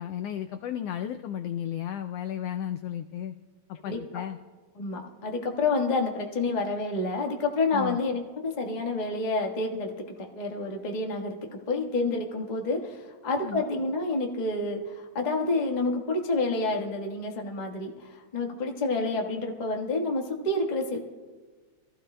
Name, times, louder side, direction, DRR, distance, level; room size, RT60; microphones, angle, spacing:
voice 1, 0.0-3.4 3.8-4.4 7.7-8.0 13.4-13.7, left 10 dB, 90° left, 7 dB, 1.3 m, -34 dB
voice 2, 3.8-4.2 4.7-11.4 11.7-21.0, left 3 dB, 40° left, 1 dB, 0.5 m, -29 dB
25.0 x 15.0 x 2.2 m, 1.4 s
omnidirectional pair, 3.3 m